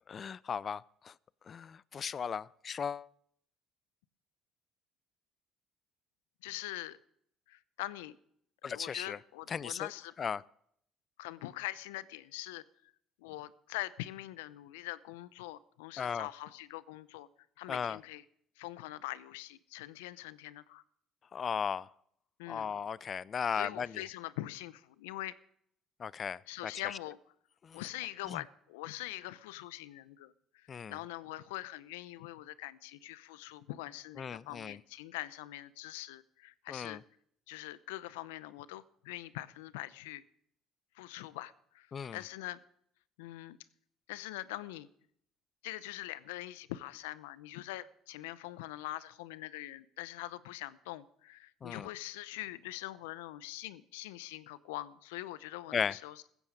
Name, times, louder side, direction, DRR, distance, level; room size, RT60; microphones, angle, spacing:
voice 1, 0.1-1.1 1.5-3.1 8.6-9.2 9.5-9.9 10.2-10.4 16.0-16.3 17.7-18.0 21.3-21.9 22.5-23.9 26.0-26.9 27.6-27.8 28.3-28.4 30.7-30.9 34.2-34.8 36.7-37.0 41.9-42.2 51.6-51.9 55.7-55.9, left 7 dB, 45° left, 0.5 m, -36 dB
voice 2, 6.4-7.0 7.5-8.2 8.6-10.1 11.2-12.6 13.2-17.3 17.6-18.2 18.6-20.8 22.4-22.7 23.5-25.3 26.5-27.2 27.7-37.0 37.5-40.2 40.9-41.9 42.1-42.6 43.2-43.6 44.1-44.9 45.6-56.3, left 16 dB, 90° left, 0.7 m, -43 dB
15.5 x 14.5 x 5.2 m
supercardioid pair, 65°, 0 cm